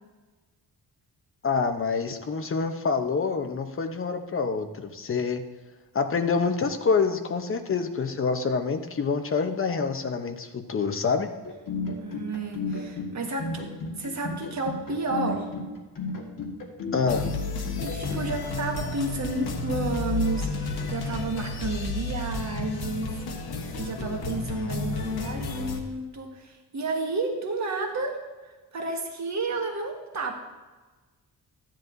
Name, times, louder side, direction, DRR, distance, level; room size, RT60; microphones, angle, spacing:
voice 1, 1.4-5.4 5.9-11.3 16.9-17.3, left 5 dB, 35° left, 7 dB, 0.9 m, -26 dB
sound 1, 11.4-18.3, left 3 dB, 60° left, 1.8 m, -34 dB
voice 2, 12.0-13.6 14.0-15.5 17.8-23.5 23.7-28.2 28.4-30.4, right 3 dB, 45° right, 2 dB, 1.5 m, -31 dB
sound 2, 17.1-25.8, left 3 dB, 85° left, 1.2 m, -31 dB
14.0 x 10.5 x 2.7 m, 1.3 s
wide cardioid pair, 135°, 37 cm